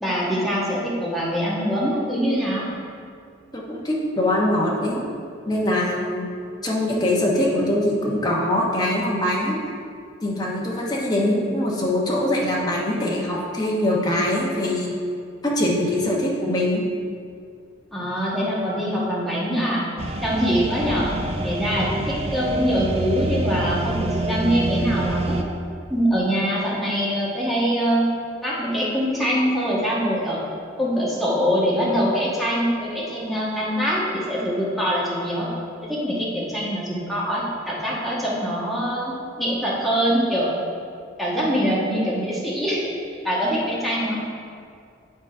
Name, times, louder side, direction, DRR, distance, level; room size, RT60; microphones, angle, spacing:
voice 1, 0.0-2.7 17.9-19.9 20.2-21.1 21.4-25.4 25.9-28.1 28.4-30.4 30.8-35.5 35.8-40.6 41.2-42.9 43.2-44.2, equal, ahead, -7 dB, 1.4 m, -23 dB
voice 2, 3.5-5.0 5.5-6.3 6.6-9.6 10.2-14.9 15.4-16.8, left 1 dB, 20° left, -3 dB, 1.0 m, -23 dB
sound 1, 20.0-25.4, right 1 dB, 30° right, 0.5 m, -26 dB
8.3 x 4.0 x 5.0 m, 2.3 s
head